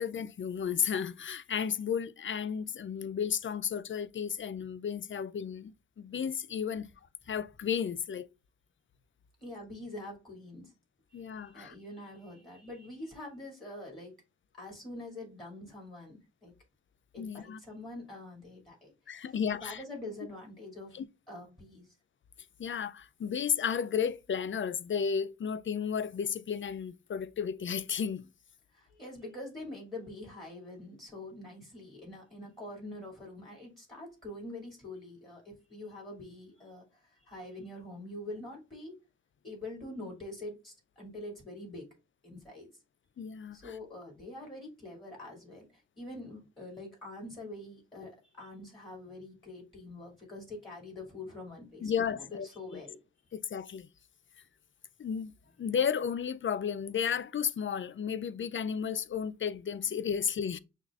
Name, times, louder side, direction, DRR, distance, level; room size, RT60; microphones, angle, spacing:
voice 1, 0.0-6.9 7.3-8.3 11.1-11.7 17.2-17.6 19.1-19.8 20.9-21.0 22.6-28.3 43.2-43.6 51.8-52.8 53.3-53.9 55.0-55.3 55.6-60.6, left 7 dB, 40° left, 0.4 m, -33 dB
voice 2, 9.4-10.7 11.1-14.2 14.6-16.5 17.1-21.0 21.3-21.9 28.7-39.0 39.4-41.9 42.2-42.7 43.5-53.0, left 2 dB, 15° left, 2.6 m, -45 dB
6.4 x 2.4 x 2.4 m
cardioid pair, 45°, 30 cm